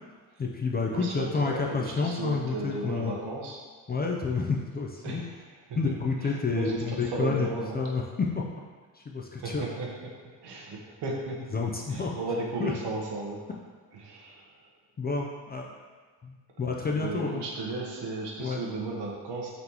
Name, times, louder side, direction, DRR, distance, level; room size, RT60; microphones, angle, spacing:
voice 1, 0.4-3.3 3.9-5.2 5.7-7.5 7.7-8.4 8.9-9.6 11.5-12.1 12.6-12.7 15.0-15.7 16.2-17.4 18.4-18.6, left 4 dB, 20° left, -1 dB, 0.4 m, -29 dB
voice 2, 0.9-3.6 5.0-5.4 5.8-5.9 6.2-7.9 9.4-10.1 10.4-11.4 11.9-13.4 13.9-14.6 16.9-19.5, right 3 dB, 65° right, -2 dB, 1.0 m, -35 dB
4.1 x 3.3 x 2.9 m, 1.5 s
supercardioid pair, 60°, 44 cm